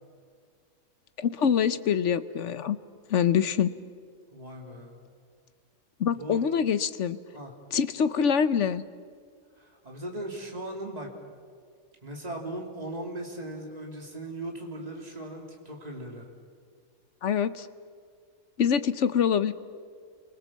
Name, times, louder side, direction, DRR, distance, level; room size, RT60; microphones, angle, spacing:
voice 1, 1.2-2.8 3.1-3.7 6.0-7.2 7.7-8.8 17.2-17.7 18.6-19.5, left 7 dB, 60° left, 13 dB, 1.1 m, -25 dB
voice 2, 4.3-5.0 6.1-6.4 7.3-7.5 9.6-11.1 12.0-16.3, right 1 dB, 25° right, 1 dB, 3.2 m, -38 dB
29.0 x 23.0 x 7.4 m, 2.1 s
omnidirectional pair, 1.5 m